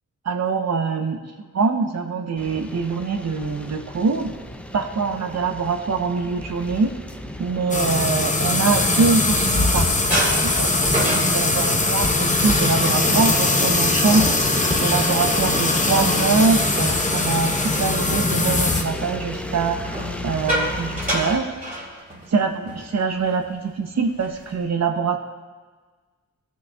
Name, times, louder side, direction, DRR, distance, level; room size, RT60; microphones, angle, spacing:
voice 1, 0.2-4.3 4.7-6.9 7.4-14.2 14.8-19.8 20.2-21.5 22.3-25.2, right 4 dB, 60° right, 5 dB, 0.8 m, -24 dB
sound 1, 2.4-21.4, left 1 dB, 5° left, 0.5 m, -34 dB
sound 2, 7.7-18.8, left 2 dB, 25° left, 0.9 m, -21 dB
sound 3, 9.0-9.7 10.1-17.9 18.3-18.6 19.8-22.4 22.7-22.9 23.2-23.5 24.0-24.6, right 1 dB, 30° right, 2.5 m, -30 dB
17.0 x 6.2 x 2.3 m, 1.4 s
wide cardioid pair, 90°, 30 cm